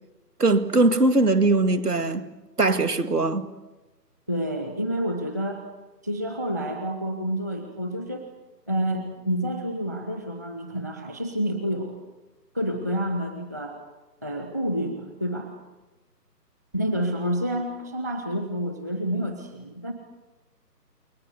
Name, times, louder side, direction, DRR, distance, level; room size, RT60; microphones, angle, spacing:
voice 1, 0.4-2.3 2.6-3.5, right 2 dB, 70° right, 2.3 m, -21 dB
voice 2, 4.3-5.6 6.0-8.3 8.7-12.0 12.5-13.8 14.2-15.5 16.7-19.9, equal, 10° right, 0.9 m, -29 dB
29.0 x 22.0 x 8.1 m
figure-of-eight pair, 150°, 49 cm